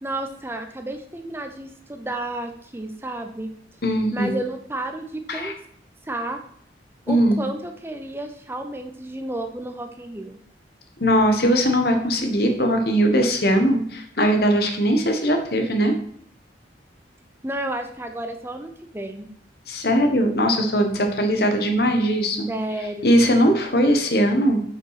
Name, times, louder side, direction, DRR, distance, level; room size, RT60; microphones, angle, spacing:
voice 1, 0.0-3.5 4.1-5.5 6.1-6.4 7.1-10.4 17.4-19.3 22.5-23.2, right 1 dB, 15° right, 6 dB, 0.6 m, -31 dB
voice 2, 3.8-4.3 5.3-5.5 7.1-7.4 11.0-15.9 19.7-22.5 23.0-24.6, equal, 60° left, 5 dB, 1.3 m, -20 dB
6.4 x 5.3 x 5.8 m, 0.63 s
head